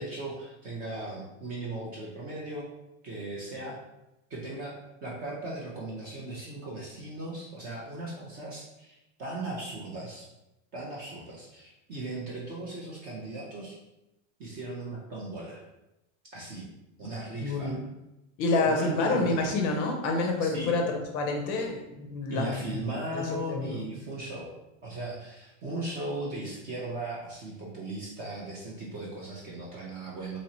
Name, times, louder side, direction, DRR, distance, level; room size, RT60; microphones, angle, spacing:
voice 1, 0.0-2.7 3.0-3.8 4.3-4.7 5.0-10.3 10.7-13.8 14.4-15.6 16.3-16.7 17.0-17.8 18.6-19.5 20.4-20.8 22.3-24.5 24.8-30.4, right 2 dB, 25° right, -4 dB, 0.3 m, -37 dB
voice 2, 17.4-17.8 18.4-22.8 23.1-23.9, left 3 dB, 35° left, 2 dB, 0.5 m, -28 dB
2.9 x 2.9 x 2.7 m, 0.93 s
supercardioid pair, 150°, 39 cm